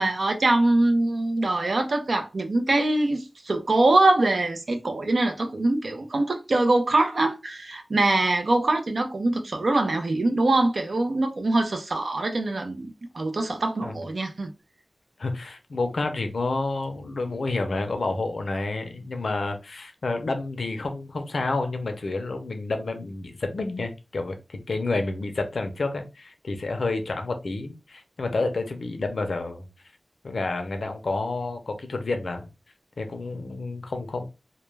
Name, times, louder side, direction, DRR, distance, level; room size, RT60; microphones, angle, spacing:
voice 1, 0.0-14.5, right 2 dB, 70° right, 0.4 m, -23 dB
voice 2, 15.2-29.7 30.2-32.5 33.0-34.3, left 3 dB, 85° left, 0.5 m, -29 dB
2.2 x 2.1 x 3.1 m
wide cardioid pair, 80°, 0 cm